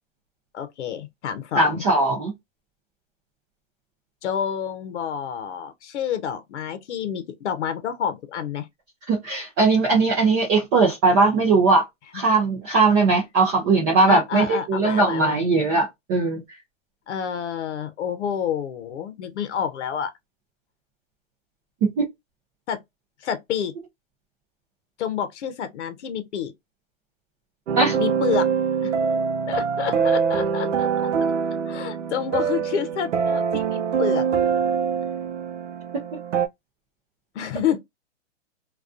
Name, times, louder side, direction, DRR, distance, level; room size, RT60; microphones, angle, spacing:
voice 1, 0.5-1.8 4.2-8.7 12.1-12.2 14.1-15.4 17.1-20.1 22.7-22.8 23.2-23.7 25.0-26.5 28.0-28.5 28.8-29.0 29.5-31.1 31.7-34.3 37.3-37.8, left 8 dB, 70° left, 0.7 m, -28 dB
voice 2, 1.5-2.3 9.1-11.8 12.1-16.4 21.8-22.1 27.8-28.0, right 3 dB, 15° right, 0.4 m, -19 dB
sound 1, 27.7-36.5, right 6 dB, 75° right, 0.6 m, -24 dB
2.3 x 2.2 x 2.4 m
hypercardioid pair, 145°, 36 cm